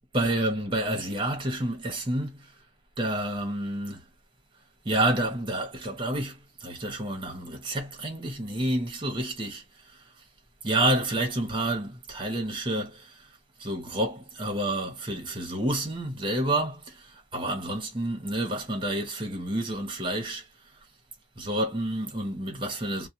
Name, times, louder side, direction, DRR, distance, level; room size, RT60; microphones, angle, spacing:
voice 1, 0.1-2.5 3.0-4.0 4.8-9.6 10.6-13.1 13.6-17.1 17.3-20.4 21.4-23.1, right 1 dB, 25° right, 0.9 m, -29 dB
2.4 x 2.1 x 2.7 m
head